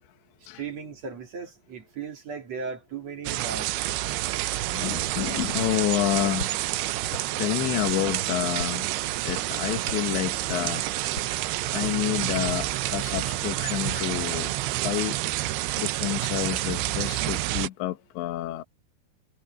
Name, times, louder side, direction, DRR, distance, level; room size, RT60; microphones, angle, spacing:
voice 1, 0.5-3.7, right 5 dB, 40° right, 3.1 m, -36 dB
sound 1, 3.3-17.7, right 16 dB, 75° right, 2.5 m, -29 dB
voice 2, 4.7-6.6 7.4-8.9 9.2-10.8 11.7-15.2 15.8-18.6, left 15 dB, 75° left, 3.3 m, -29 dB
sound 2, 4.8-14.4, left 2 dB, 25° left, 7.2 m, -44 dB
omnidirectional pair, 5.3 m